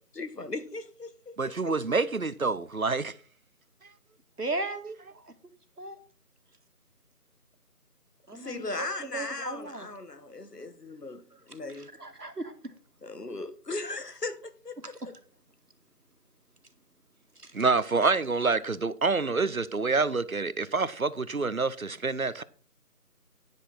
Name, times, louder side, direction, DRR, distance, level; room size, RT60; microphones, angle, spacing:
voice 1, 0.1-1.8 8.3-11.9 13.0-15.1, left 2 dB, 85° left, 1.7 m, -38 dB
voice 2, 1.4-3.2 17.5-22.4, right 4 dB, 60° right, 0.9 m, -27 dB
voice 3, 4.4-5.4 5.8-6.0 8.3-9.9 11.3-12.7 14.8-15.1 17.4-17.6, right 2 dB, 80° right, 2.1 m, -37 dB
10.5 x 10.5 x 4.2 m
figure-of-eight pair, 180°, 46 cm